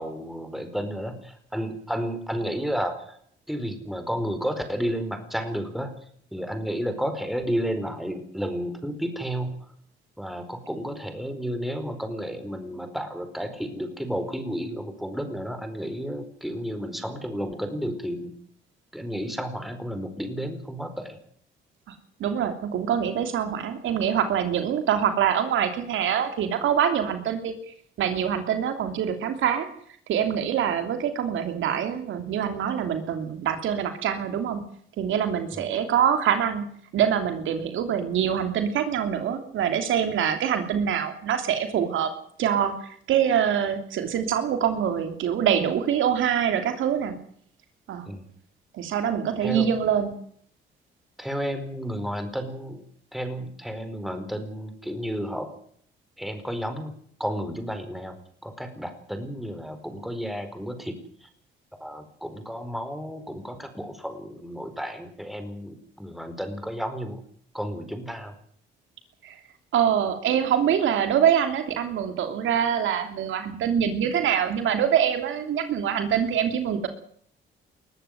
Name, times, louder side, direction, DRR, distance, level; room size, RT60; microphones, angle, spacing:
voice 1, 0.0-3.2 3.5-5.9 6.3-9.6 10.2-18.3 18.9-21.2 35.5-35.6 48.1-48.3 49.4-49.7 51.2-52.8 53.1-55.5 56.2-56.9 57.2-58.2 58.4-61.3 61.8-67.2 67.5-68.3, equal, ahead, 7 dB, 4.6 m, -32 dB
voice 2, 22.2-27.5 28.0-29.7 30.1-34.6 35.0-36.7 36.9-42.1 42.4-42.7 43.1-47.1 47.9-48.0 48.7-50.1 69.2-69.4 69.7-76.9, right 8 dB, 80° right, 8 dB, 3.0 m, -24 dB
21.5 x 13.5 x 9.6 m, 0.62 s
cardioid pair, 90°, 20 cm